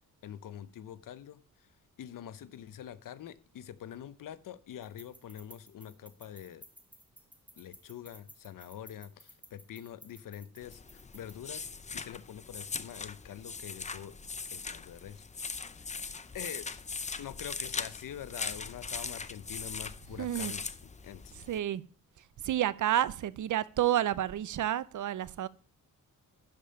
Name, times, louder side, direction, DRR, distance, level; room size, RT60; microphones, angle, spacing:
voice 1, 0.2-1.7 2.0-6.6 7.6-11.7 11.9-14.2 14.5-16.0 16.3-16.8 17.2-20.7 21.0-21.4, left 10 dB, 75° left, 0.8 m, -45 dB
sound 1, 4.8-11.5, equal, 5° right, 1.1 m, -56 dB
sound 2, 10.6-21.6, left 4 dB, 20° left, 0.6 m, -40 dB
voice 2, 20.2-20.5 21.5-21.8 22.4-25.5, right 11 dB, 65° right, 0.6 m, -30 dB
12.0 x 5.2 x 5.6 m
wide cardioid pair, 115°, 33 cm